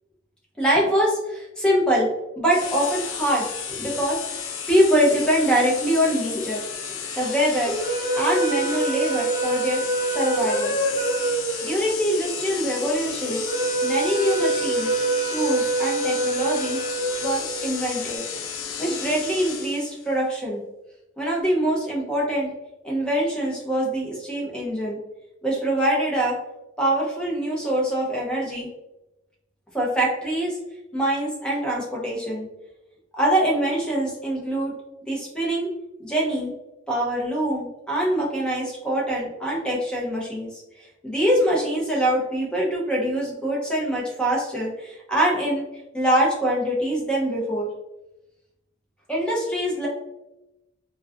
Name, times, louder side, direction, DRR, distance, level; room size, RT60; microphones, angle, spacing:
voice 1, 0.6-2.1 2.4-4.2 4.7-6.6 7.2-7.7 8.1-9.8 10.1-10.8 11.6-13.4 13.8-14.9 15.3-16.8 17.2-18.2 18.8-20.6 21.2-22.5 22.8-25.0 25.4-26.4 26.8-28.7 29.7-30.6 30.9-32.5 33.1-34.7 35.1-35.7 36.0-36.5 36.9-40.6 41.0-45.6 45.9-47.7 49.1-49.9, right 1 dB, 5° left, -4 dB, 0.6 m, -24 dB
sound 1, 2.5-20.1, left 6 dB, 85° left, 0.4 m, -33 dB
sound 2, 7.6-18.0, right 2 dB, 20° left, 1.0 m, -26 dB
2.3 x 2.2 x 2.4 m, 0.94 s
head